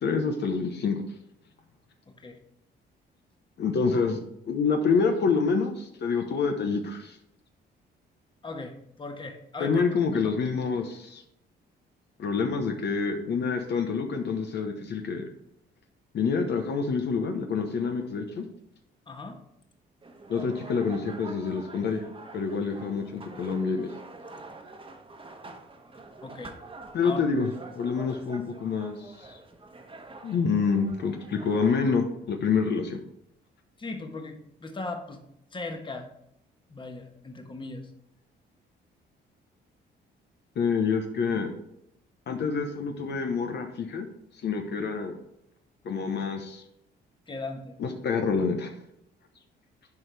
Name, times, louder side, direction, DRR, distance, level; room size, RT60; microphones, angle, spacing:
voice 1, 0.0-1.0 3.6-4.2 4.5-7.2 9.6-11.2 12.2-15.3 16.1-18.4 20.3-22.0 22.3-23.9 26.9-27.5 27.8-29.4 30.2-33.0 40.6-41.5 42.3-44.1 44.4-45.2 45.8-46.6 47.8-48.7, left 5 dB, 60° left, 4 dB, 1.0 m, -27 dB
voice 2, 2.1-2.4 8.4-9.8 10.1-10.3 19.1-19.4 26.2-26.5 27.0-27.2 33.8-35.2 35.5-36.1 36.7-37.9 47.3-47.8, left 3 dB, 25° left, 4 dB, 1.2 m, -38 dB
sound 1, 20.0-31.8, right 3 dB, 25° right, 1.2 m, -46 dB
10.5 x 4.6 x 3.4 m, 0.78 s
cardioid pair, 90°, 20 cm